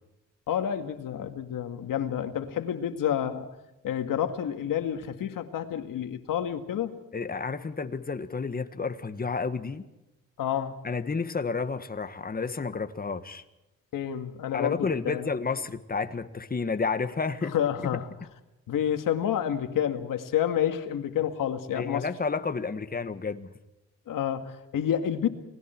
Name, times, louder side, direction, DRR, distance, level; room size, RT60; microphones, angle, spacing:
voice 1, 0.5-3.5 3.8-7.0 10.4-10.8 13.9-15.3 17.5-18.1 18.7-22.1 24.1-25.3, left 9 dB, 90° left, 2.0 m, -29 dB
voice 2, 7.1-9.8 10.8-13.4 14.5-17.5 21.7-23.5, left 4 dB, 30° left, 1.5 m, -31 dB
30.0 x 20.0 x 4.5 m
cardioid pair, 105°, 32 cm